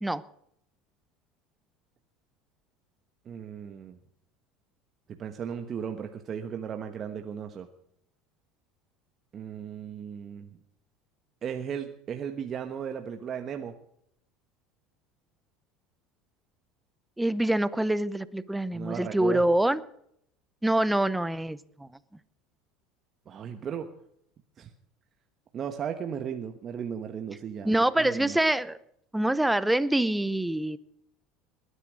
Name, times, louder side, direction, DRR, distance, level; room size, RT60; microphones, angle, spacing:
voice 1, 3.2-4.0 5.2-7.7 9.3-10.6 11.4-13.7 18.7-19.4 23.3-23.9 24.6-24.7 25.5-28.4, right 8 dB, 40° right, 5 dB, 1.2 m, -36 dB
voice 2, 17.2-19.8 20.6-21.9 27.6-28.8 29.1-30.8, right 1 dB, 5° right, 17 dB, 0.7 m, -25 dB
20.5 x 10.0 x 6.3 m, 0.72 s
supercardioid pair, 110°, 0 cm